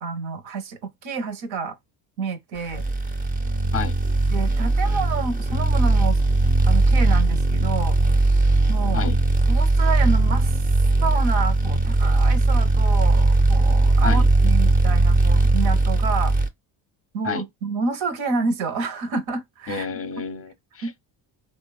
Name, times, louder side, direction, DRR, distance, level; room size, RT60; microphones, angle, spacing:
voice 1, 0.0-1.8 2.2-2.8 4.3-6.2 6.7-8.0 8.7-9.1 9.5-10.6 11.0-16.4 17.1-19.9 20.8-20.9, right 4 dB, 70° right, 0.8 m, -29 dB
sound 1, 2.7-16.5, right 2 dB, 20° right, 0.5 m, -19 dB
voice 2, 19.7-21.1, left 5 dB, 30° left, 0.6 m, -30 dB
2.8 x 2.2 x 2.2 m
supercardioid pair, 65°, 49 cm